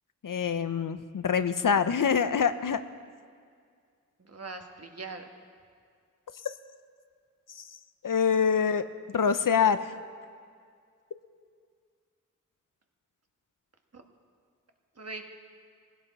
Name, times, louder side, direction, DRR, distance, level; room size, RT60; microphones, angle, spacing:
voice 1, 0.2-2.8 6.4-6.5 7.5-7.7 8.0-9.9, left 6 dB, 80° left, 11 dB, 0.6 m, -25 dB
voice 2, 4.2-5.3 13.9-14.0 14.9-15.2, right 3 dB, 50° right, 4 dB, 1.3 m, -41 dB
19.0 x 16.0 x 4.1 m, 2.1 s
wide cardioid pair, 80°, 32 cm